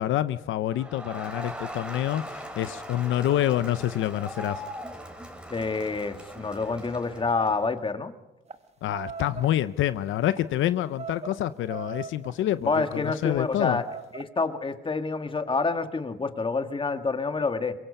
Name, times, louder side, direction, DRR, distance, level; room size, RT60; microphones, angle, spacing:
voice 1, 0.0-4.6 8.8-13.8, left 12 dB, 80° left, 14 dB, 0.7 m, -27 dB
Crowd, 0.7-7.7, equal, 5° right, 3.7 m, -40 dB
voice 2, 5.5-8.1 12.6-13.8 14.1-17.7, left 4 dB, 25° left, 8 dB, 1.7 m, -28 dB
sound 1, 8.5-8.6 8.9-9.5 10.2-10.4 11.0-11.4 11.7-12.4 13.1-13.3 13.8-14.2, right 6 dB, 30° right, 1.2 m, -38 dB
24.5 x 22.0 x 5.5 m, 1.0 s
cardioid pair, 90°, 20 cm